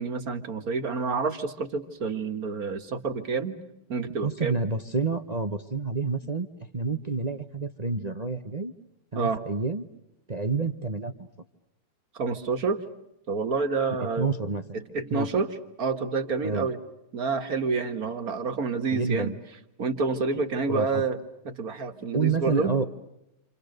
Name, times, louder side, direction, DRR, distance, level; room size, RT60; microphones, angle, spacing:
voice 1, 0.0-3.6 3.9-4.6 9.1-9.4 12.1-12.8 13.3-14.3 14.7-15.5 15.8-16.8 17.1-19.4 19.8-21.2 21.5-22.8, right 4 dB, 55° right, 7 dB, 2.2 m, -28 dB
voice 2, 4.2-6.5 6.7-8.7 9.1-9.9 10.3-11.3 14.2-14.8 15.1-15.3 16.4-16.7 18.9-19.4 20.7-21.0 22.1-22.9, right 4 dB, 30° right, 9 dB, 1.0 m, -28 dB
29.5 x 28.0 x 6.7 m, 0.86 s
omnidirectional pair, 1.9 m